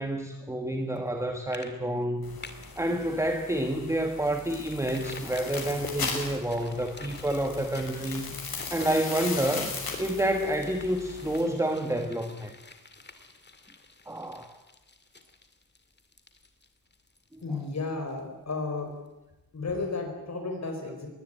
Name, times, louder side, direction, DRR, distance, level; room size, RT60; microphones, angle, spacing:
voice 1, 0.0-2.4 2.8-8.4 8.7-12.5 14.1-14.6 17.3-17.6, right 1 dB, 10° right, 6 dB, 1.5 m, -29 dB
sound 1, 1.0-1.2 1.5-1.7 2.0-2.8 3.2-3.3 3.7-3.8 4.6-18.2 18.5-18.6, left 3 dB, 30° left, 2.2 m, -47 dB
sound 2, 2.2-11.4, left 4 dB, 85° left, 6.4 m, -38 dB
voice 2, 17.4-18.9 19.5-21.1, left 3 dB, 50° left, 3 dB, 4.7 m, -33 dB
22.0 x 18.5 x 8.9 m, 1.0 s
wide cardioid pair, 170°, 35 cm